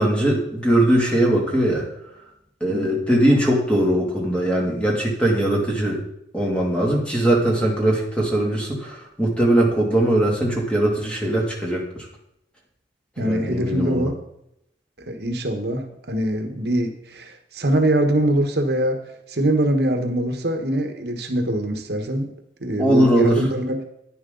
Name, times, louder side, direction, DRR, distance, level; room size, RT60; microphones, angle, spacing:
voice 1, 0.0-1.8 2.6-6.0 6.3-11.8 13.2-14.1 22.8-23.4, right 1 dB, 5° left, -2 dB, 2.5 m, -20 dB
voice 2, 13.2-14.2 15.1-19.0 19.3-22.3 22.6-23.8, right 1 dB, 65° right, 5 dB, 1.3 m, -23 dB
11.0 x 10.0 x 3.9 m, 0.78 s
head